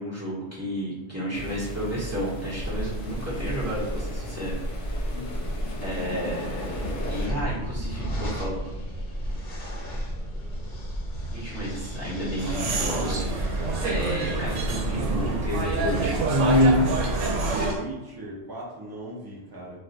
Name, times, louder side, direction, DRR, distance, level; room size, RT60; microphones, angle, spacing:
voice 1, 0.0-5.1 5.8-8.6 11.3-16.5, equal, 15° right, -9 dB, 0.9 m, -32 dB
sound 1, 1.3-7.3, left 1 dB, 70° left, 0.9 m, -38 dB
sound 2, 2.5-17.8, equal, 45° left, 0.9 m, -33 dB
voice 2, 5.1-5.5 17.4-19.8, right 1 dB, 35° right, -3 dB, 0.4 m, -38 dB
sound 3, 12.4-17.7, right 1 dB, 85° right, 0.9 m, -25 dB
2.4 x 2.3 x 3.9 m, 1.0 s
omnidirectional pair, 1.2 m